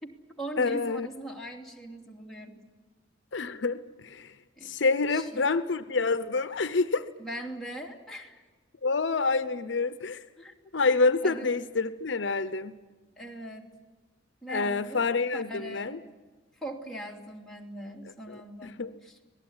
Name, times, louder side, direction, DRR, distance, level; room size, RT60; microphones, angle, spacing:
voice 1, 0.0-2.6 4.6-4.7 5.1-5.4 7.2-8.4 10.4-10.7 11.2-11.6 13.2-13.7 14.4-15.0 15.3-16.0 16.5-19.2, right 1 dB, ahead, -3 dB, 2.8 m, -41 dB
voice 2, 0.6-1.1 3.3-4.3 4.6-7.1 8.8-10.2 10.7-12.8 14.5-16.0 18.3-18.9, left 4 dB, 70° left, 12 dB, 0.8 m, -27 dB
25.5 x 19.0 x 9.6 m, 1.3 s
head